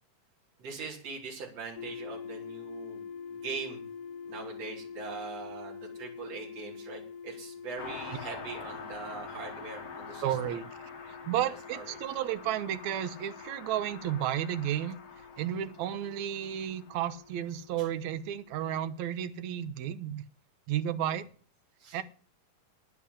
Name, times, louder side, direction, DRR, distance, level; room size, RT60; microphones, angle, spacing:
voice 1, 0.6-3.0 3.3-3.8 4.3-10.6 11.4-12.0 17.8-17.9 21.1-21.2 21.8-22.0, right 4 dB, 45° right, -3 dB, 5.4 m, -42 dB
sound 1, 1.8-19.7, left 6 dB, 75° left, 2.4 m, -46 dB
Car passing by, 7.8-17.7 18.0-18.1, left 5 dB, 50° left, 2.7 m, -46 dB
voice 2, 10.2-10.7 11.0-15.0 15.4-20.2 20.7-21.3 21.9-22.0, right 11 dB, 70° right, 12 dB, 1.9 m, -32 dB
10.0 x 8.6 x 9.8 m, 0.43 s
omnidirectional pair, 4.0 m